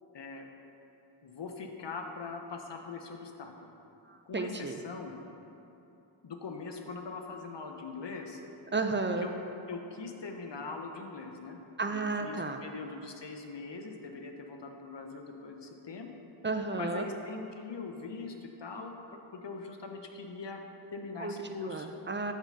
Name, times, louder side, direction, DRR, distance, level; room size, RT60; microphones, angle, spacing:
voice 1, 0.1-0.5 1.2-3.7 4.3-5.1 6.2-8.4 9.2-9.3 9.7-11.6 11.9-16.1 16.8-20.6 20.9-21.9, left 4 dB, 60° left, 4 dB, 0.7 m, -42 dB
voice 2, 4.1-4.8 8.7-9.3 11.8-12.6 16.4-17.1 21.2-22.3, right 3 dB, 25° right, 6 dB, 0.4 m, -33 dB
7.2 x 3.8 x 5.3 m, 2.9 s
wide cardioid pair, 50°, 48 cm